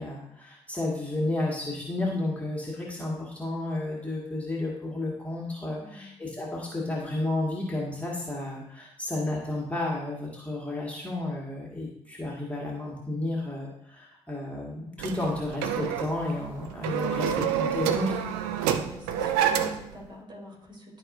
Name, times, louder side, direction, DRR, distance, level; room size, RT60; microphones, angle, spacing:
voice 1, 0.0-18.2, left 2 dB, 10° left, -4 dB, 1.9 m, -32 dB
voice 2, 5.7-6.1 18.6-21.0, equal, 30° right, -2 dB, 3.0 m, -45 dB
sound 1, 15.0-19.9, right 9 dB, 70° right, 0.5 m, -28 dB
12.0 x 5.0 x 2.6 m, 0.79 s
figure-of-eight pair, 40°, 15 cm